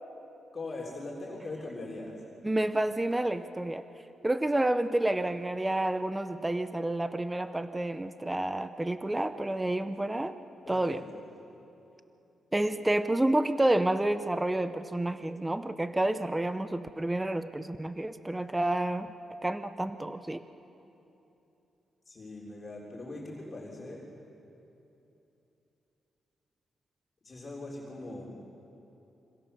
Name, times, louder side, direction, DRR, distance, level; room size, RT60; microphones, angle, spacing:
voice 1, 0.5-2.2 10.6-11.2 22.1-24.0 27.2-28.3, left 2 dB, 30° left, -3 dB, 3.5 m, -41 dB
voice 2, 2.4-3.8 4.2-10.3 10.7-11.0 12.5-19.1 19.4-20.4, right 1 dB, 10° right, 10 dB, 0.7 m, -29 dB
26.0 x 26.0 x 6.8 m, 3.0 s
wide cardioid pair, 150°, 0 cm